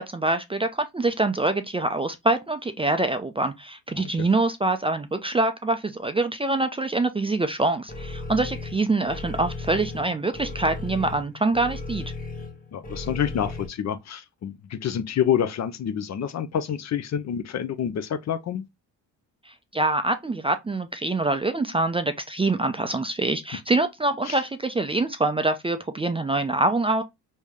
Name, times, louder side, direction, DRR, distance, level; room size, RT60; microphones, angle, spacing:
voice 1, 0.0-12.1 19.5-27.0, right 2 dB, 15° right, 0.4 m, -25 dB
voice 2, 4.0-4.3 12.7-18.6 24.3-24.4, left 9 dB, 45° left, 0.6 m, -28 dB
sound 1, 7.9-13.7, left 3 dB, 20° left, 1.0 m, -35 dB
3.2 x 2.7 x 3.4 m
cardioid pair, 80°, 38 cm